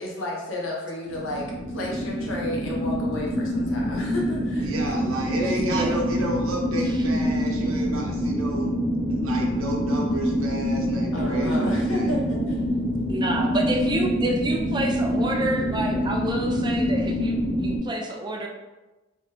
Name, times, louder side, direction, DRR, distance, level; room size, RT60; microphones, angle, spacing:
voice 1, 0.0-4.7 5.4-5.9 11.1-12.7 14.0-14.1, left 1 dB, 65° left, -3 dB, 0.6 m, -32 dB
sound 1, 1.1-17.8, equal, 40° left, 0.9 m, -26 dB
voice 2, 4.6-8.7 9.1-12.1, right 1 dB, 85° right, 0 dB, 0.6 m, -32 dB
voice 3, 5.7-6.0 6.9-7.0 13.1-18.5, right 1 dB, 20° right, 1 dB, 0.3 m, -29 dB
2.8 x 2.2 x 3.2 m, 1.1 s
head